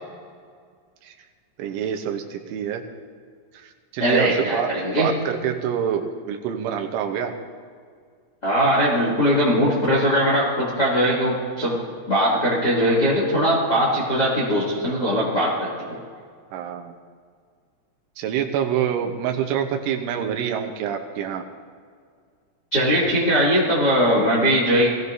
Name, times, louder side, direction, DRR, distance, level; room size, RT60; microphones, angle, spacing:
voice 1, 1.6-2.9 3.5-7.4 16.5-17.0 18.2-21.5, right 9 dB, 80° right, 3 dB, 3.4 m, -26 dB
voice 2, 4.0-5.1 8.4-11.8 12.1-16.0 22.7-24.9, equal, 25° left, -6 dB, 2.4 m, -20 dB
22.5 x 16.5 x 2.7 m, 2.1 s
omnidirectional pair, 5.6 m